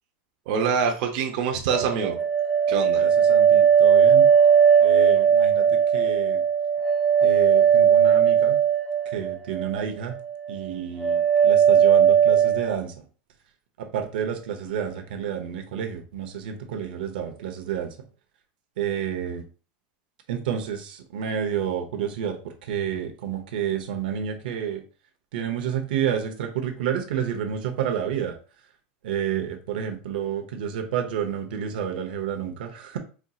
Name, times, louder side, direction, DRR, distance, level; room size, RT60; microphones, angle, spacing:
voice 1, 0.5-2.2 2.7-3.0, right 6 dB, 50° right, 2 dB, 0.7 m, -25 dB
sound 1, 1.7-9.8 10.1-10.7 11.0-12.7, right 8 dB, 5° left, 0.5 m, -18 dB
voice 2, 3.0-4.3 4.8-6.4 7.2-8.6 9.0-10.2 10.5-13.0 13.8-18.0 18.8-19.4 20.3-24.8 25.3-28.4 29.0-33.0, right 8 dB, 85° right, 4 dB, 0.8 m, -30 dB
4.3 x 2.8 x 2.4 m, 0.36 s
supercardioid pair, 175°, 5 cm